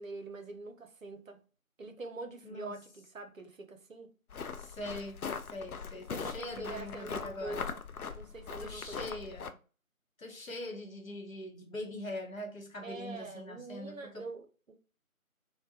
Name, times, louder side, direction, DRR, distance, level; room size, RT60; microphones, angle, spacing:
voice 1, 0.0-1.4 1.8-4.1 5.9-7.8 8.1-9.1 12.8-14.7, right 3 dB, 65° right, 0.7 m, -45 dB
voice 2, 2.4-2.8 4.5-5.2 5.5-7.6 8.6-9.5 10.2-14.3, left 1 dB, 70° left, 0.9 m, -42 dB
sound 1, 4.3-9.5, left 5 dB, 85° left, 0.5 m, -41 dB
2.7 x 2.1 x 2.7 m
figure-of-eight pair, 170°, 43 cm